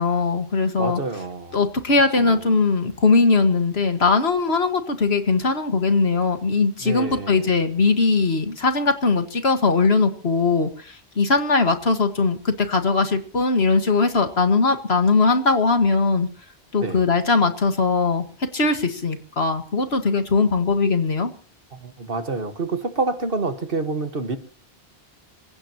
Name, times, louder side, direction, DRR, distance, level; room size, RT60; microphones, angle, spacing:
voice 1, 0.0-1.0 1.5-16.3 16.7-18.2 18.5-21.3, left 4 dB, 80° left, 7 dB, 2.0 m, -20 dB
voice 2, 0.8-1.6 2.2-2.4 6.8-7.5 16.8-17.0 21.7-24.4, right 3 dB, 60° right, 8 dB, 1.8 m, -28 dB
26.0 x 16.5 x 3.0 m, 0.41 s
omnidirectional pair, 1.1 m